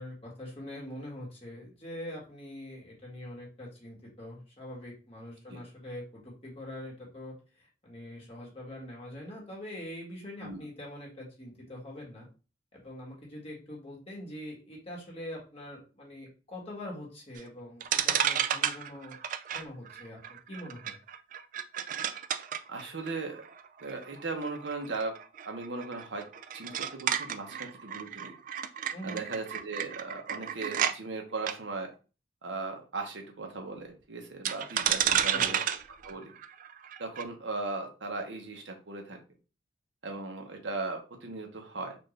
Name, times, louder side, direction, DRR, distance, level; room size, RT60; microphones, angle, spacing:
voice 1, 0.0-12.3 12.7-19.2 19.5-21.0 28.9-29.2 35.1-35.6, left 1 dB, 35° left, -3 dB, 1.6 m, -43 dB
sound 1, 17.4-17.5 17.8-30.9 31.4-31.5 34.4-37.2, right 9 dB, 45° right, 0.3 m, -32 dB
voice 2, 22.7-23.4 23.8-25.2 25.4-26.3 26.5-28.3 29.0-31.9 32.4-35.8 36.0-36.3 37.0-39.2 40.0-42.0, right 3 dB, 85° right, 3 dB, 0.9 m, -37 dB
4.3 x 2.5 x 3.2 m, 0.34 s
head